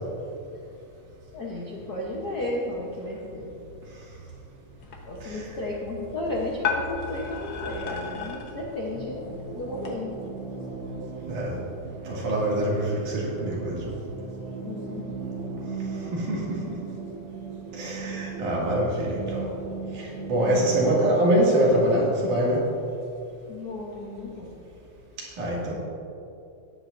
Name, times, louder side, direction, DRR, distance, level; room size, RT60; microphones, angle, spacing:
voice 1, 1.3-3.6 5.0-10.1 14.6-15.0 18.1-18.2 23.5-24.5, left 1 dB, 70° left, -3 dB, 0.9 m, -33 dB
sound 1, 4.8-9.9, left 6 dB, 55° left, 1.6 m, -35 dB
sound 2, 8.9-20.9, right 4 dB, 40° right, 1.6 m, -37 dB
voice 2, 11.3-11.6 12.0-13.9 16.1-16.8 17.7-19.5 19.9-22.7 25.2-25.7, right 1 dB, 90° right, -5 dB, 3.8 m, -24 dB
15.0 x 10.5 x 2.6 m, 2.7 s
omnidirectional pair, 3.4 m